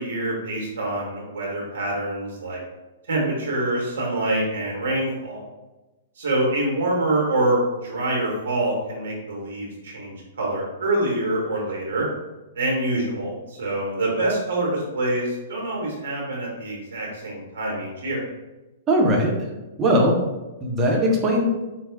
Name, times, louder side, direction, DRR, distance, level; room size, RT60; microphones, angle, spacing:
voice 1, 0.0-2.6 3.1-5.4 6.2-12.0 12.5-18.2, right 1 dB, 60° right, -2 dB, 1.1 m, -25 dB
voice 2, 18.9-19.4 19.8-20.3 20.6-21.5, equal, 20° right, -1 dB, 0.9 m, -19 dB
4.6 x 2.3 x 3.8 m, 1.1 s
figure-of-eight pair, 110°, 0 cm